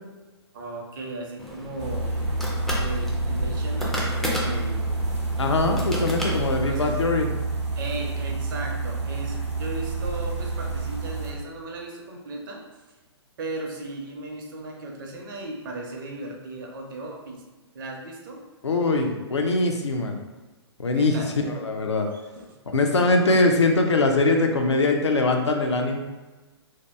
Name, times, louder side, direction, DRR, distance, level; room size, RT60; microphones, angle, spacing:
voice 1, 0.5-2.4 2.8-4.9 6.3-7.0 7.8-12.6 13.4-17.4 17.7-18.4 21.0-21.4 22.1-22.6, right 2 dB, 50° right, 0 dB, 0.6 m, -36 dB
sound 1, 1.4-6.9, left 1 dB, ahead, 0.3 m, -34 dB
sound 2, 1.8-11.3, right 2 dB, 90° right, 0.7 m, -28 dB
voice 2, 5.4-7.3 18.6-20.1 20.8-21.1 21.4-22.1 22.7-26.0, left 2 dB, 80° left, 3 dB, 0.5 m, -22 dB
2.7 x 2.2 x 3.3 m, 1.2 s
figure-of-eight pair, 125°, 14 cm